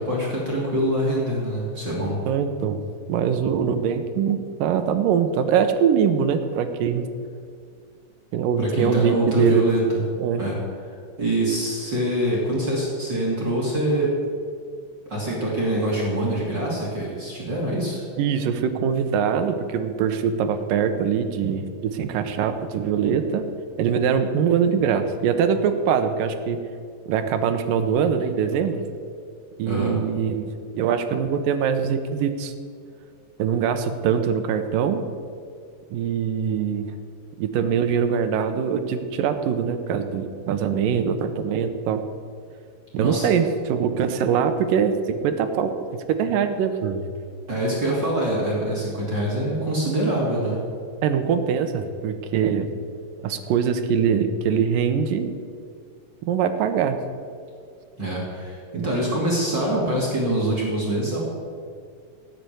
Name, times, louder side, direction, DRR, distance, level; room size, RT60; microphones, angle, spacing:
voice 1, 0.0-2.2 8.6-10.6 10.9-14.2 15.1-18.0 29.6-29.9 43.0-43.3 47.5-50.6 58.0-61.2, right 1 dB, 35° right, -4 dB, 2.8 m, -24 dB
voice 2, 2.3-2.8 3.1-7.1 8.3-9.6 10.2-10.4 18.2-23.4 23.8-26.6 27.1-28.9 29.6-30.5 30.7-32.5 33.4-35.0 35.9-36.9 37.4-42.0 42.9-47.1 51.0-52.7 53.2-55.3 56.2-57.0 58.7-58.9, right 7 dB, 85° right, 8 dB, 2.6 m, -23 dB
17.5 x 6.9 x 9.1 m, 2.2 s
omnidirectional pair, 3.9 m